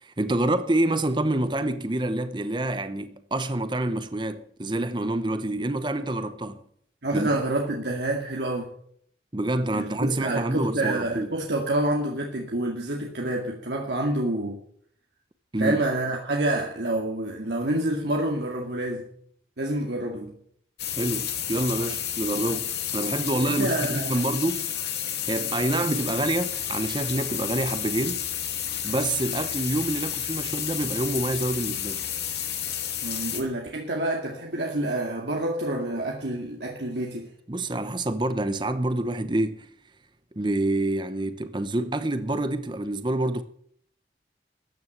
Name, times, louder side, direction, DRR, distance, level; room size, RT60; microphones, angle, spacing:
voice 1, 0.0-6.6 7.1-7.3 9.3-11.3 15.5-15.8 21.0-24.7 25.3-28.2 28.8-32.0 37.5-39.7 40.3-43.4, right 1 dB, 25° right, 0.9 m, -27 dB
voice 2, 7.0-8.7 9.7-14.6 15.6-19.1 19.6-20.4 23.4-24.2 33.0-37.3, right 1 dB, 75° right, 2.1 m, -28 dB
sound 1, 20.8-33.4, left 10 dB, 70° left, 2.5 m, -31 dB
14.5 x 9.6 x 8.0 m
head